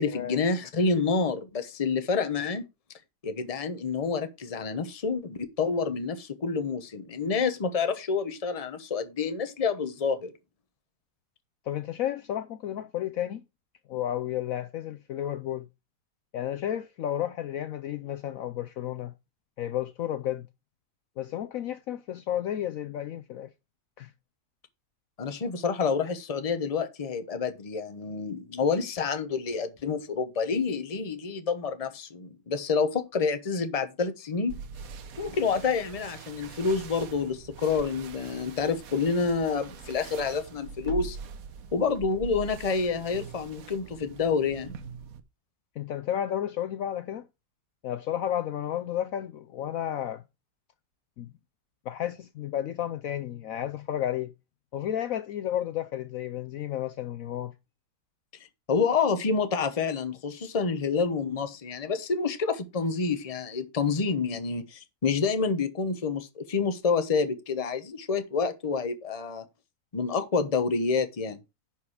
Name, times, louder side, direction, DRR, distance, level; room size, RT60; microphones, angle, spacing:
voice 1, 0.0-2.6 3.2-10.3 25.2-34.6 35.2-41.2 41.7-44.7 58.7-69.4 69.9-71.4, left 5 dB, 25° left, 0.9 m, -28 dB
voice 2, 11.7-13.4 13.9-15.7 16.3-19.1 19.6-20.5 21.2-23.5 24.0-24.1 45.8-47.3 47.8-50.2 51.2-51.3 51.9-54.3 54.7-57.5, left 11 dB, 65° left, 0.9 m, -32 dB
sound 1, 34.5-45.2, right 6 dB, 60° right, 1.3 m, -43 dB
10.5 x 4.8 x 4.8 m
omnidirectional pair, 1.8 m